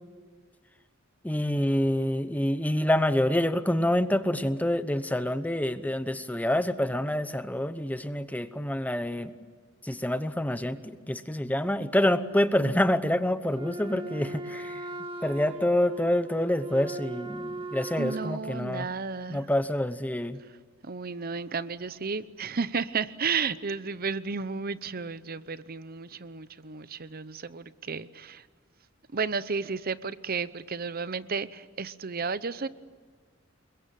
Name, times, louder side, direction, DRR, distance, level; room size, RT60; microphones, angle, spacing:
voice 1, 1.2-9.3 9.8-14.8 15.2-18.9 19.3-20.4, left 1 dB, 10° left, 12 dB, 1.0 m, -27 dB
Wind instrument woodwind instrument, 13.5-18.4, right 2 dB, 25° right, 1.9 m, -39 dB
voice 2, 18.0-19.4 20.8-28.4 29.1-32.7, right 5 dB, 45° right, 15 dB, 0.8 m, -33 dB
29.0 x 22.5 x 9.2 m, 1.5 s
head